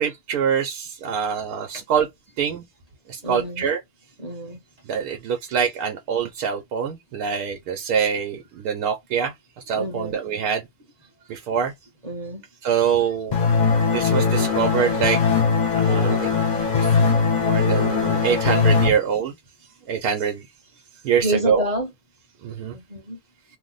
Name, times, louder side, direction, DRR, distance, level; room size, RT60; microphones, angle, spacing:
voice 1, 0.0-2.1 2.4-2.6 3.1-3.8 4.9-9.3 9.7-10.6 11.3-11.7 12.6-13.4 13.9-15.2 15.7-16.3 16.7-16.9 17.4-19.3 19.9-20.4 21.0-21.6 22.4-22.7, right 7 dB, 80° right, 1.1 m, -24 dB
voice 2, 3.2-3.7 4.2-4.6 9.7-10.2 12.0-12.4 18.9-19.0 21.2-21.9 22.7-23.2, right 1 dB, 35° right, 0.6 m, -28 dB
sound 1, 13.3-18.9, left 5 dB, 40° left, 0.7 m, -20 dB
2.9 x 2.0 x 3.8 m
omnidirectional pair, 1.6 m